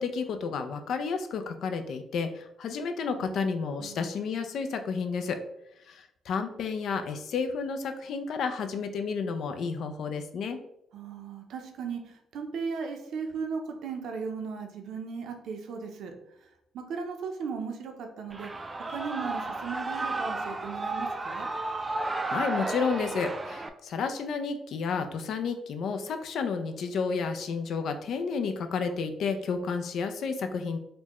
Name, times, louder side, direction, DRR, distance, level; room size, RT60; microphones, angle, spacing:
voice 1, 0.0-5.4 5.9-10.6 22.3-30.8, left 5 dB, 70° left, 7 dB, 0.4 m, -31 dB
voice 2, 10.9-16.1 16.4-16.5 16.7-18.6 18.9-21.5, right 5 dB, 75° right, 4 dB, 0.6 m, -37 dB
Shout / Cheering, 18.3-23.7, right 2 dB, 25° right, 0.3 m, -33 dB
4.2 x 2.2 x 2.9 m, 0.79 s
cardioid pair, 90°, 0 cm